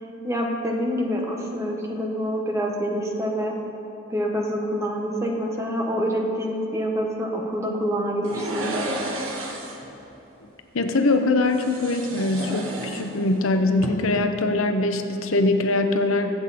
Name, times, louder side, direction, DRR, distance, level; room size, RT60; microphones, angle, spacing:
voice 1, 0.2-3.5 4.1-8.8, equal, 15° right, 0 dB, 1.4 m, -26 dB
sound 1, 8.2-9.9 11.5-13.4 13.7-13.9, right 1 dB, 90° right, 1.5 m, -32 dB
voice 2, 10.7-16.3, left 2 dB, 90° left, 6 dB, 0.9 m, -22 dB
23.0 x 7.8 x 4.3 m, 3.0 s
head